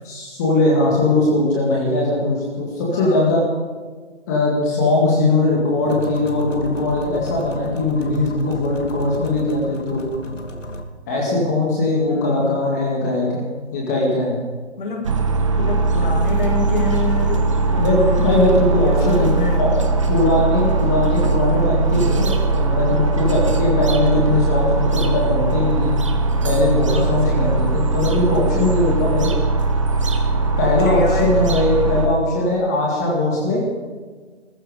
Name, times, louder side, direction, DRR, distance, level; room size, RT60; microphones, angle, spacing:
voice 1, 0.0-3.4 4.3-10.1 11.1-13.4 13.7-14.4 17.8-19.3 19.6-19.7 20.1-25.9 26.4-29.3 30.6-33.6, left 2 dB, 15° left, -3 dB, 2.0 m, -20 dB
voice 2, 2.9-3.4 12.1-12.6 14.8-15.2 15.5-18.5 18.8-19.7 26.9-27.8 30.8-31.4, left 3 dB, 45° left, 1 dB, 2.3 m, -28 dB
sound 1, 5.8-10.8, left 2 dB, 85° left, 2.8 m, -32 dB
sound 2, 15.0-32.1, right 3 dB, 25° right, 1.0 m, -20 dB
20.0 x 14.0 x 5.1 m, 1.4 s
hypercardioid pair, 165°, 36 cm